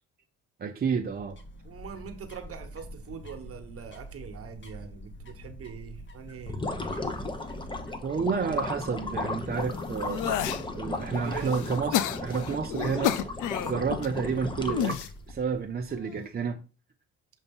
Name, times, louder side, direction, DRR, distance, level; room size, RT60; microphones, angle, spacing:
voice 1, 0.6-1.4 8.0-10.2 10.7-13.1 13.6-16.6, right 6 dB, 30° right, 0.5 m, -30 dB
sound 1, 0.8-16.0, equal, 40° left, 1.3 m, -47 dB
voice 2, 1.6-7.2 11.1-12.2, right 7 dB, 50° right, 1.1 m, -43 dB
sound 2, 6.4-15.3, left 2 dB, 15° left, 0.9 m, -35 dB
sound 3, 9.5-10.6 11.2-14.1 14.6-15.1 15.9-16.3, left 11 dB, 85° left, 0.5 m, -31 dB
6.8 x 2.7 x 5.4 m
cardioid pair, 90°, 30 cm